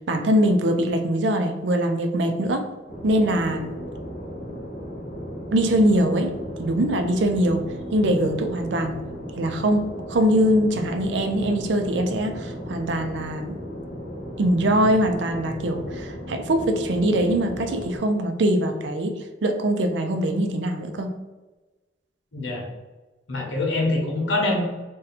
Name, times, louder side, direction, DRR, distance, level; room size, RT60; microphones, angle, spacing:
voice 1, 0.1-2.7 3.0-3.7 5.5-9.0 9.4-13.6 14.4-19.2 19.4-21.1, right 1 dB, 75° right, 6 dB, 0.4 m, -22 dB
sound 1, 2.9-18.0, equal, 50° left, 0.9 m, -35 dB
voice 2, 22.3-22.7 23.3-24.6, left 2 dB, 90° left, -1 dB, 0.9 m, -24 dB
2.7 x 2.2 x 4.0 m, 1.2 s
head